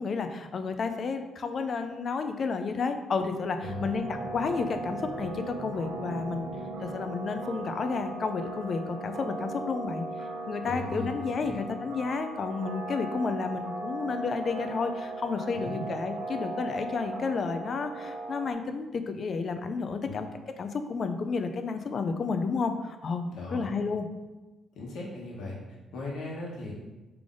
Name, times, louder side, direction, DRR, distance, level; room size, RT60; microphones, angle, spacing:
voice 1, 0.0-6.5 6.8-10.0 10.5-20.3 20.6-24.1, left 4 dB, 50° left, 7 dB, 0.4 m, -31 dB
sound 1, 3.6-18.5, right 3 dB, 70° right, 0.7 m, -38 dB
voice 2, 10.6-11.6 15.5-15.9 20.1-20.2 23.3-23.7 24.7-25.6 25.9-26.7, left 2 dB, 75° left, -3 dB, 1.2 m, -38 dB
3.7 x 3.3 x 3.8 m, 1.1 s
cardioid pair, 90°, 0 cm